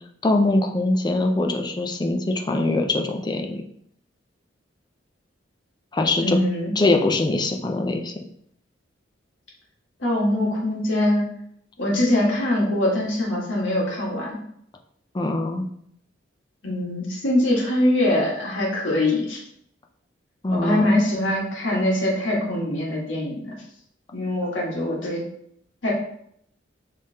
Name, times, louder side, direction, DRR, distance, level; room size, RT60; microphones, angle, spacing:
voice 1, 0.2-3.6 5.9-6.4 6.8-8.1 15.1-15.7 20.4-21.0, left 2 dB, 20° left, 4 dB, 0.4 m, -22 dB
voice 2, 6.2-6.7 10.0-11.3 11.8-14.4 16.6-19.4 20.5-23.5 24.1-25.2 25.8-25.9, left 1 dB, 80° left, -3 dB, 1.5 m, -23 dB
5.2 x 3.3 x 2.8 m, 0.70 s
head